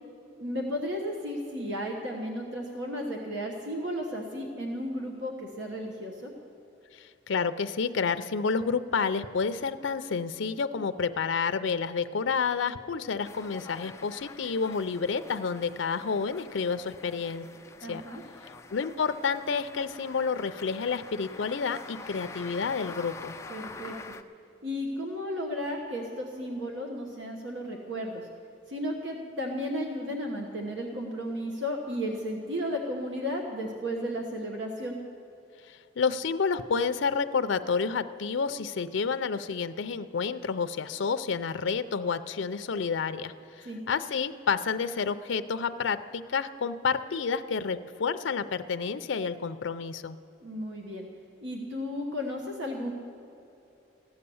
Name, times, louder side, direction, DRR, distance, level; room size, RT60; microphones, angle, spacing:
voice 1, 0.4-6.3 17.8-18.2 23.5-24.1 24.6-28.3 28.7-35.0 43.6-43.8 50.4-51.1 51.4-52.9, equal, 75° right, 1 dB, 1.3 m, -34 dB
voice 2, 6.9-17.5 17.9-18.0 18.7-23.3 35.6-50.2, left 5 dB, 80° left, 12 dB, 0.5 m, -30 dB
sound 1, 13.2-24.2, left 3 dB, 15° left, 0.4 m, -46 dB
15.5 x 9.7 x 7.0 m, 2.8 s
head